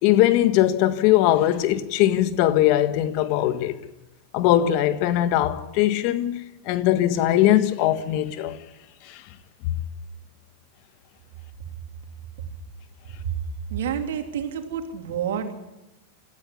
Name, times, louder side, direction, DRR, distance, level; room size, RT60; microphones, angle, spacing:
voice 1, 0.0-3.7 4.3-8.6 9.0-9.2, left 13 dB, 55° left, 1.5 m, -20 dB
voice 2, 13.7-15.5, right 8 dB, 75° right, 2.8 m, -28 dB
20.0 x 14.0 x 9.9 m
hypercardioid pair, 110°, 0 cm